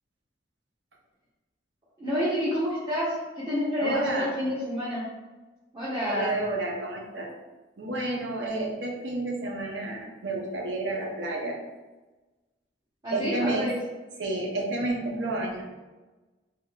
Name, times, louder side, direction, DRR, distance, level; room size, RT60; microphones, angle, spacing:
voice 1, 2.0-5.0 5.7-6.3 13.0-13.7, equal, 25° right, -10 dB, 0.8 m, -28 dB
voice 2, 3.8-4.3 6.1-7.3 7.8-11.6 13.1-13.7 14.2-15.6, right 2 dB, 85° right, 0 dB, 0.7 m, -30 dB
3.7 x 3.4 x 2.3 m, 1.2 s
head